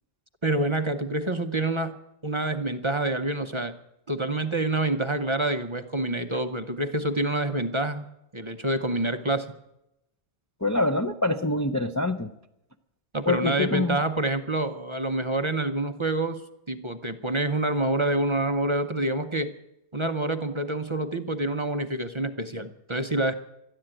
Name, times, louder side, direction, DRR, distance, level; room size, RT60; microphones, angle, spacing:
voice 1, 0.4-2.0 2.2-3.8 4.1-8.1 8.3-9.5 13.1-16.4 16.7-19.5 19.9-23.3, right 2 dB, 30° right, 7 dB, 0.6 m, -27 dB
voice 2, 10.6-12.3 13.3-14.0, left 2 dB, 25° left, 5 dB, 0.4 m, -25 dB
13.0 x 11.0 x 8.9 m, 0.85 s
omnidirectional pair, 1.2 m